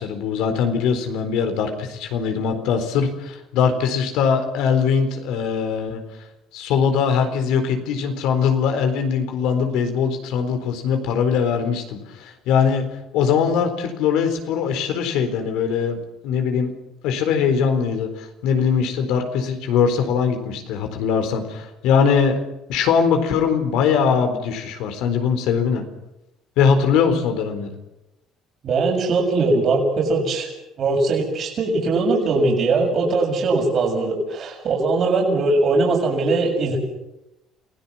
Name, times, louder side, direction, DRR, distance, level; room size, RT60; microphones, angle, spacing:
voice 1, 0.0-6.0 6.5-12.9 13.1-16.7 17.0-22.4 22.7-25.8 26.6-27.8, left 6 dB, 80° left, 6 dB, 4.1 m, -21 dB
voice 2, 28.6-30.5 30.8-36.8, right 3 dB, 50° right, 0 dB, 7.0 m, -20 dB
28.0 x 17.0 x 7.3 m, 0.92 s
cardioid pair, 100°, 0 cm